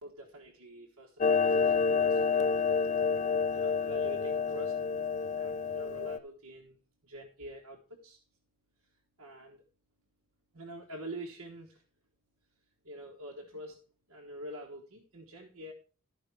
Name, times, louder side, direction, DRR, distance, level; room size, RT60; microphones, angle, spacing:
voice 1, 0.0-2.8 3.5-4.7 5.4-6.8 7.0-8.2 9.2-9.6 10.5-11.8 12.8-13.8 14.1-15.7, right 1 dB, 80° right, 0 dB, 1.3 m, -46 dB
Clock, 1.2-6.2, left 5 dB, 35° left, 0.4 m, -28 dB
12.5 x 5.1 x 4.6 m, 0.39 s
head